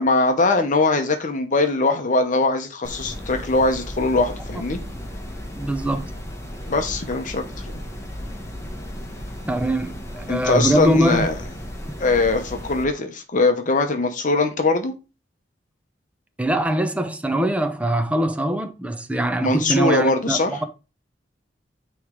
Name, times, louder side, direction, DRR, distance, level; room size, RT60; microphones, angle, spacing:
voice 1, 0.0-4.8 6.7-7.4 10.3-11.3 12.0-14.9 19.4-20.5, left 3 dB, 45° left, 0.8 m, -21 dB
sound 1, 2.8-12.9, equal, 15° left, 1.1 m, -35 dB
voice 2, 5.5-6.1 9.5-11.3 16.4-20.6, right 1 dB, 10° right, 0.7 m, -22 dB
9.2 x 3.2 x 3.7 m
head